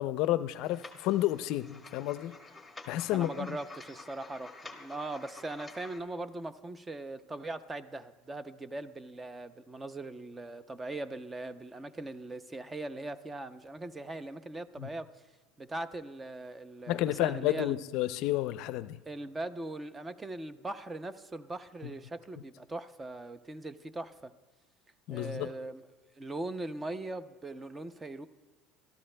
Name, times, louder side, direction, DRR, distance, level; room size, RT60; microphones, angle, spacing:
voice 1, 0.0-2.3 2.9-3.5 14.8-14.9 16.9-19.0 25.1-25.5, left 14 dB, 65° left, 14 dB, 0.4 m, -31 dB
sound 1, 0.6-6.0, left 3 dB, 5° left, 1.2 m, -50 dB
voice 2, 3.1-15.1 15.6-17.8 19.1-24.3 25.1-25.8 26.2-28.3, right 2 dB, 15° right, 13 dB, 0.6 m, -40 dB
25.5 x 13.0 x 2.2 m, 1.2 s
supercardioid pair, 110°, 0 cm